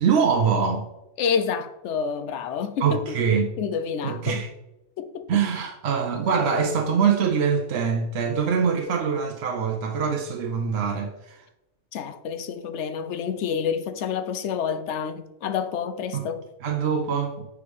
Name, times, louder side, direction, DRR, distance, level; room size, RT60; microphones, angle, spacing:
voice 1, 0.0-0.9 2.8-3.4 4.0-4.5 5.3-11.4 16.1-16.2 16.6-17.5, right 6 dB, 65° right, 0.9 m, -24 dB
voice 2, 1.2-3.2 3.6-4.4 5.0-5.4 11.9-16.5, left 7 dB, 80° left, 0.9 m, -28 dB
4.9 x 4.8 x 5.2 m
omnidirectional pair, 1.2 m